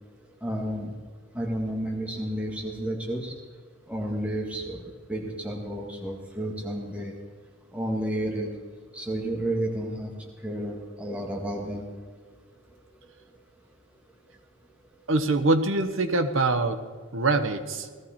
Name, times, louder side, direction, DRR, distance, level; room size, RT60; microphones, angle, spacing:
voice 1, 0.4-0.9 1.3-3.3 3.9-7.1 7.7-8.5 8.9-10.1 10.4-11.8, right 1 dB, 5° right, -1 dB, 1.7 m, -31 dB
voice 2, 15.1-16.8 17.1-17.9, right 2 dB, 70° right, 8 dB, 1.1 m, -24 dB
17.5 x 14.0 x 4.4 m, 1.5 s
head